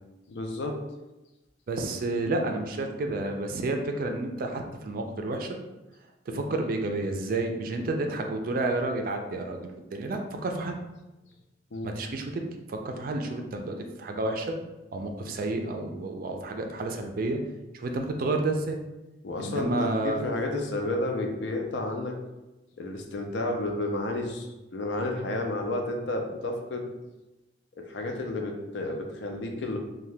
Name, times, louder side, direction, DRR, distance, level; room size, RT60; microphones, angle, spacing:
voice 1, 0.3-0.8 6.3-6.5 11.7-12.0 19.2-22.2 22.8-26.9 27.8-29.8, left 2 dB, 75° left, 3 dB, 0.5 m, -31 dB
voice 2, 1.7-5.5 6.3-10.8 11.8-12.4 12.7-14.6 14.9-17.4 17.7-18.8 19.4-20.2, right 2 dB, 50° right, 4 dB, 0.4 m, -30 dB
2.7 x 2.2 x 3.2 m, 1.0 s
head